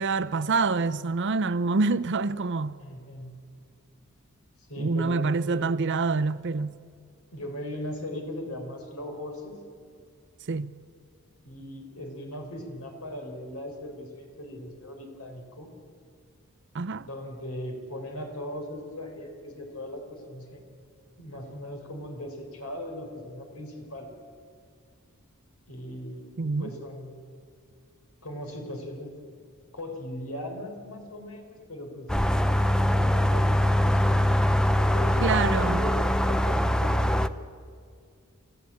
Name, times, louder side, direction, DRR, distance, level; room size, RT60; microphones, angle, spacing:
voice 1, 0.0-2.8 4.8-6.8 10.5-10.7 16.7-17.1 26.4-26.7 35.2-35.8, right 4 dB, 55° right, 0.7 m, -26 dB
voice 2, 2.8-3.4 4.7-5.2 5.5-5.7 7.3-9.6 11.4-15.7 17.1-20.7 21.2-24.1 25.7-26.3 26.6-27.2 28.2-29.2 29.7-32.4 32.8-34.2 34.7-37.2, left 1 dB, 80° left, 4.4 m, -38 dB
sound 1, 32.1-37.3, equal, 5° left, 0.5 m, -23 dB
28.5 x 14.0 x 8.6 m
head